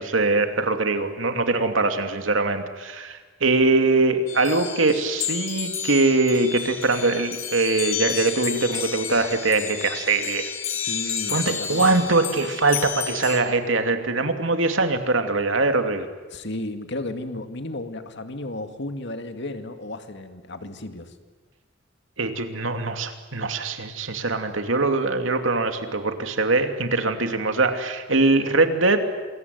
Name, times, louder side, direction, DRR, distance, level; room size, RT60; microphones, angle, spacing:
voice 1, 0.0-10.5 11.3-16.1 22.2-29.0, right 3 dB, 80° right, 6 dB, 2.8 m, -22 dB
sound 1, 4.3-13.4, left 8 dB, 90° left, 4.2 m, -31 dB
voice 2, 10.9-12.0 16.3-21.2, left 2 dB, 65° left, 8 dB, 2.3 m, -34 dB
28.0 x 22.0 x 9.5 m, 1.3 s
head